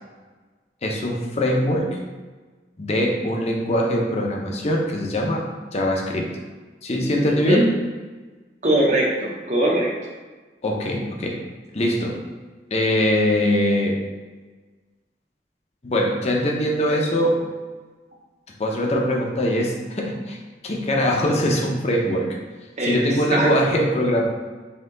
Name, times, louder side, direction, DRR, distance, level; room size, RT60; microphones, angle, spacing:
voice 1, 0.8-2.0 2.8-6.3 6.8-7.6 10.6-11.4 11.7-12.2 12.7-14.0 15.8-17.4 18.6-20.4 20.6-22.4 22.8-24.3, equal, 35° left, 0 dB, 0.6 m, -22 dB
voice 2, 7.1-7.6 8.6-9.9 22.8-23.5, right 1 dB, 40° right, -2 dB, 0.8 m, -21 dB
4.3 x 2.8 x 3.8 m, 1.3 s
head